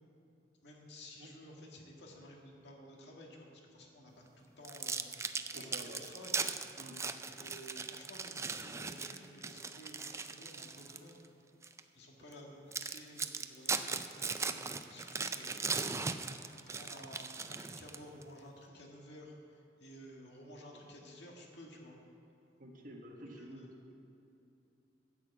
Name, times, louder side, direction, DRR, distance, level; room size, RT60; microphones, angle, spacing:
voice 1, 0.6-6.3 7.1-11.2 11.9-22.0 23.4-23.7, equal, 70° left, 0 dB, 2.0 m, -53 dB
sound 1, 4.6-11.1 11.6-11.8 12.3-12.4 12.7-18.2, right 4 dB, 15° right, 0.4 m, -39 dB
voice 2, 5.5-6.0 6.8-7.0 22.6-23.7, right 1 dB, 50° right, 1 dB, 1.5 m, -49 dB
12.5 x 6.2 x 8.4 m, 2.8 s
head